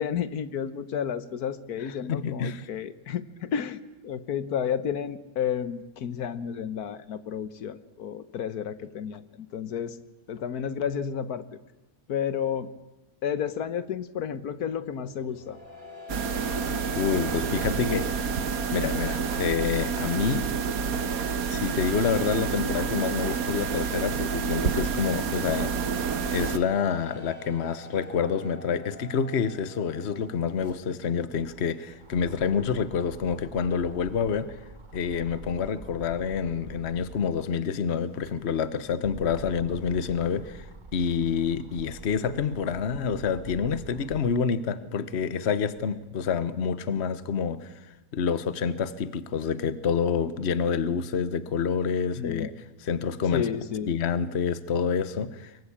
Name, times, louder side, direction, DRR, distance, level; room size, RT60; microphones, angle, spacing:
voice 1, 0.0-10.0 10.3-11.6 12.1-12.7 13.2-15.6 52.2-52.5 53.3-53.9, left 8 dB, 85° left, 14 dB, 1.6 m, -31 dB
voice 2, 2.1-2.6 17.0-18.2 18.7-20.5 21.5-25.7 26.3-34.6 34.9-40.6 40.9-47.7 48.1-52.5 52.8-53.5 53.9-55.5, left 6 dB, 50° left, 15 dB, 1.3 m, -27 dB
sound 1, 14.8-30.8, left 2 dB, 50° right, 3.5 m, -47 dB
sound 2, 16.1-26.6, right 6 dB, 70° right, 1.6 m, -29 dB
sound 3, 29.8-37.4 37.9-44.5 45.0-46.1, right 2 dB, 30° right, 1.9 m, -47 dB
23.5 x 23.5 x 8.7 m, 1.0 s
omnidirectional pair, 1.6 m